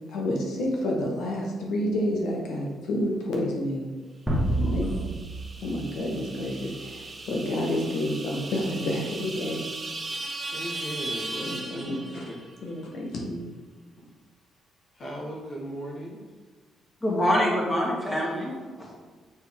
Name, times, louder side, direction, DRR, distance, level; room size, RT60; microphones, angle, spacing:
voice 1, 0.1-3.9 4.5-5.0 5.6-9.6 11.4-12.2 12.6-13.4, left 1 dB, 80° left, -1 dB, 1.3 m, -29 dB
sound 1, 4.3-6.7, right 1 dB, 5° right, 1.7 m, -29 dB
sound 2, 4.5-12.6, right 2 dB, 30° right, 0.8 m, -38 dB
voice 2, 4.6-5.1 10.5-12.4 14.9-16.2, equal, 60° left, -5 dB, 1.5 m, -37 dB
voice 3, 17.0-19.0, equal, 20° left, -5 dB, 1.9 m, -25 dB
6.6 x 4.5 x 3.6 m, 1.4 s
cardioid pair, 90°, 0 cm